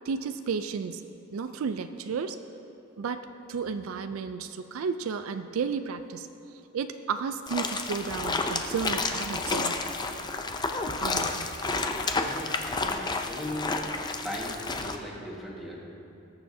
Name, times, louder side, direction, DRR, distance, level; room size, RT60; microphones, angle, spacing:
voice 1, 0.1-1.0 1.3-2.4 3.0-6.3 6.7-9.8 11.0-11.6, right 5 dB, 80° right, 10 dB, 0.4 m, -33 dB
sound 1, 7.5-15.0, left 3 dB, 20° left, 0.5 m, -30 dB
voice 2, 12.2-13.7 14.2-15.8, left 1 dB, ahead, -5 dB, 1.6 m, -38 dB
20.0 x 6.9 x 2.7 m, 2.9 s
head